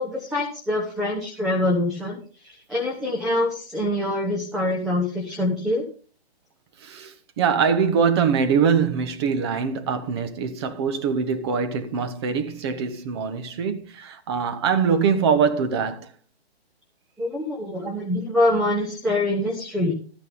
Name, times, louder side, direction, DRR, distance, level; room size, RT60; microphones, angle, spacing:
voice 1, 0.0-5.8 17.2-19.9, left 1 dB, ahead, 0.6 m, -25 dB
voice 2, 6.8-16.1, right 6 dB, 25° right, 1.2 m, -23 dB
13.0 x 9.6 x 3.9 m
figure-of-eight pair, 135°, 32 cm